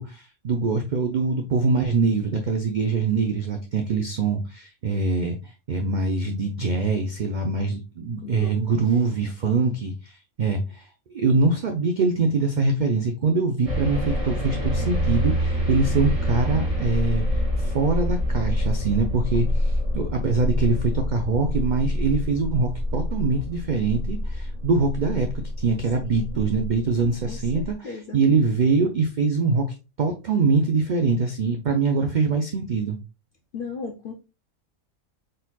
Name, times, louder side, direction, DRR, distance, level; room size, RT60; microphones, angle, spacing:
voice 1, 0.0-10.9 11.1-25.3 25.6-29.6 30.0-33.0, right 4 dB, 85° right, 4 dB, 0.4 m, -23 dB
voice 2, 8.2-9.1 26.0-26.4 27.2-28.2 33.5-34.1, left 5 dB, 60° left, 3 dB, 0.5 m, -37 dB
sound 1, 13.7-27.7, left 1 dB, 25° right, 1.0 m, -26 dB
4.3 x 3.9 x 2.3 m, 0.29 s
omnidirectional pair, 1.5 m